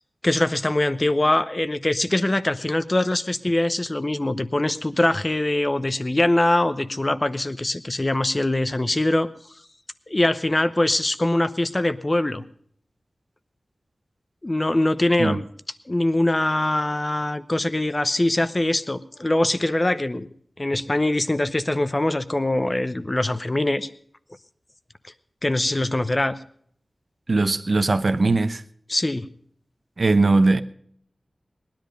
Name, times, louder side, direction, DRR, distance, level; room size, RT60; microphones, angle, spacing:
voice 1, 0.2-9.3 10.1-12.4 14.4-15.4 15.9-20.3 20.6-23.9 25.4-26.4 28.9-29.3, left 1 dB, 30° left, 0.7 m, -23 dB
voice 2, 27.3-28.6 30.0-30.6, right 3 dB, 55° right, 0.8 m, -19 dB
19.0 x 10.5 x 5.2 m
wide cardioid pair, 65°, 0 cm